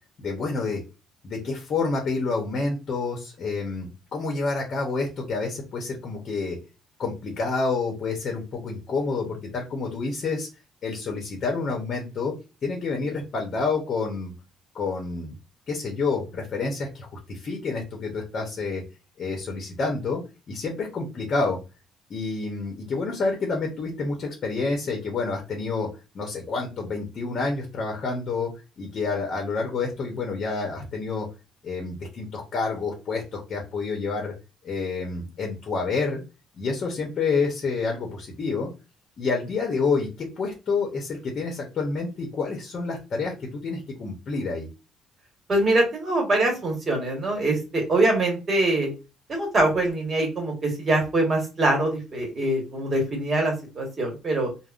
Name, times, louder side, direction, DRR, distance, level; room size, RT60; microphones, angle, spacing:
voice 1, 0.2-0.8 1.2-6.6 7.0-10.5 10.8-12.3 12.6-14.3 14.7-15.4 15.7-18.8 19.2-20.2 20.5-21.6 22.1-25.9 26.1-31.3 31.6-34.3 34.6-36.2 36.5-38.7 39.2-44.7, left 4 dB, 50° left, 1 dB, 0.8 m, -28 dB
voice 2, 45.5-48.9 49.3-54.5, right 2 dB, 35° right, 1 dB, 1.3 m, -23 dB
3.4 x 2.1 x 2.5 m, 0.29 s
cardioid pair, 105°, 0 cm